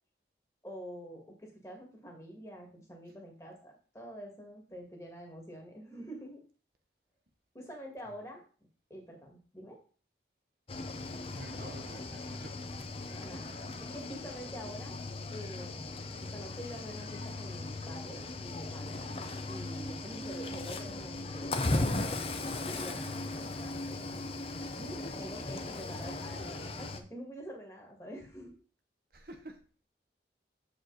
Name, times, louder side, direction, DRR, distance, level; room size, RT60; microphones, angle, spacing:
voice 1, 0.6-6.4 7.5-8.4 8.9-9.8 12.9-15.0 15.3-19.0 19.4-24.3 24.8-28.5, equal, 15° left, 1 dB, 1.8 m, -46 dB
Cricket / Waves surf, 10.7-27.0, left 2 dB, 35° left, 0.6 m, -38 dB
voice 2, 11.3-12.8 29.1-29.5, right 1 dB, 55° right, 5 dB, 1.0 m, -49 dB
7.7 x 5.0 x 3.9 m, 0.39 s
head